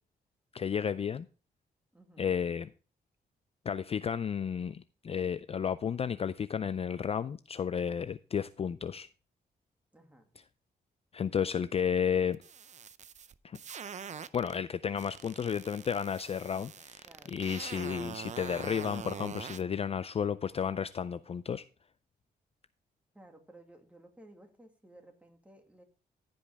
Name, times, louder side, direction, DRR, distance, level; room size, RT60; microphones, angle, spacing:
voice 1, 0.5-1.3 2.2-2.7 3.7-9.1 11.1-12.4 13.4-13.6 14.3-21.6, left 7 dB, 35° left, 14 dB, 0.4 m, -32 dB
voice 2, 1.9-2.3 9.9-10.3 17.0-17.5 23.1-25.8, right 1 dB, 10° right, 3 dB, 2.2 m, -56 dB
sound 1, 12.3-14.6 15.0-19.6, right 7 dB, 45° right, 0.5 m, -44 dB
15.0 x 5.3 x 3.5 m, 0.36 s
cardioid pair, 90°, 17 cm